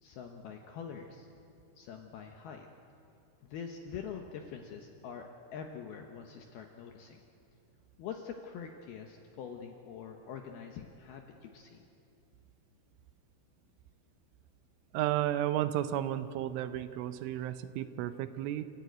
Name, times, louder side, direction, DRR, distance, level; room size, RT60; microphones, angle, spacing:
voice 1, 0.0-1.3 1.8-2.7 3.4-7.2 8.0-11.9, left 7 dB, 75° left, 3 dB, 2.3 m, -45 dB
voice 2, 14.9-18.7, right 12 dB, 80° right, 11 dB, 3.2 m, -33 dB
29.5 x 13.5 x 9.3 m, 2.6 s
omnidirectional pair, 5.7 m